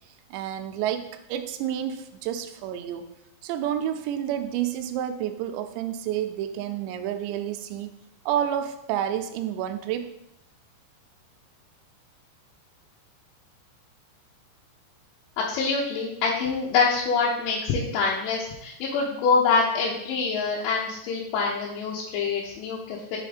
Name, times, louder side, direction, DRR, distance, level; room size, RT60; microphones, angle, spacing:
voice 1, 0.3-3.1 3.4-7.9 8.3-10.1, right 10 dB, 85° right, 7 dB, 2.6 m, -29 dB
voice 2, 15.4-23.2, left 4 dB, 80° left, -4 dB, 3.1 m, -25 dB
7.0 x 3.5 x 5.0 m, 0.79 s
omnidirectional pair, 5.3 m